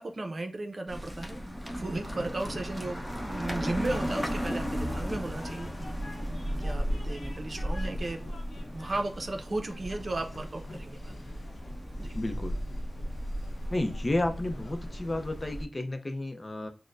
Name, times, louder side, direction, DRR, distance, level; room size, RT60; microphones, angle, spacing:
voice 1, 0.0-1.4 1.7-5.7 6.6-8.2 8.7-11.1 12.0-12.2, right 2 dB, 55° right, 5 dB, 0.7 m, -35 dB
sound 1, 0.9-15.6, equal, 10° left, 0.9 m, -35 dB
Train, 1.7-15.6, left 1 dB, 85° left, 0.9 m, -47 dB
voice 2, 12.1-12.6 13.7-16.7, left 1 dB, 35° left, 6 dB, 0.6 m, -31 dB
6.1 x 2.2 x 2.5 m, 0.34 s
cardioid pair, 50°, 0 cm